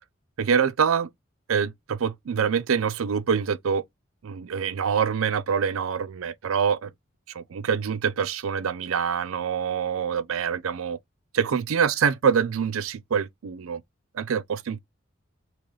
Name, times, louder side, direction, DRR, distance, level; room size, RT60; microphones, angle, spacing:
voice 1, 0.4-1.1 1.5-3.8 4.2-6.9 7.3-11.0 11.3-13.8 14.1-14.8, right 7 dB, 90° right, 0.5 m, -25 dB
3.1 x 3.0 x 3.9 m
head